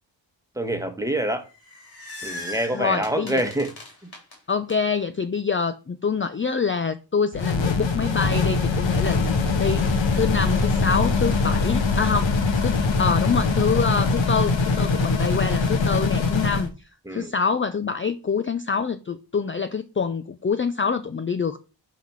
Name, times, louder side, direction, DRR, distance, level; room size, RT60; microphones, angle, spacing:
voice 1, 0.6-1.5 2.2-3.7 4.0-4.1 17.1-17.3, right 1 dB, 5° right, 1.4 m, -26 dB
sound 1, 1.4-4.7, left 2 dB, 55° left, 3.9 m, -39 dB
voice 2, 2.7-3.4 4.5-12.3 12.6-21.6, left 5 dB, 25° left, 0.5 m, -26 dB
sound 2, 7.3-16.7, left 4 dB, 80° left, 1.5 m, -22 dB
11.5 x 4.2 x 4.6 m
wide cardioid pair, 90°, 45 cm